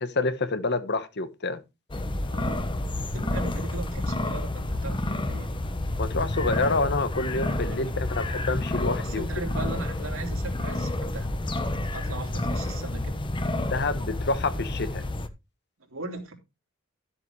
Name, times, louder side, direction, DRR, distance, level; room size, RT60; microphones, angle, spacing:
voice 1, 0.0-1.6 6.0-9.2 13.7-15.0, left 3 dB, 55° left, 1.2 m, -28 dB
sound 1, 1.9-15.3, left 1 dB, 25° left, 1.0 m, -29 dB
voice 2, 2.3-2.7 3.0-5.5 7.8-7.9 9.0-11.3 11.9-13.2 15.9-16.3, right 3 dB, 75° right, 3.3 m, -38 dB
13.0 x 7.8 x 3.2 m
head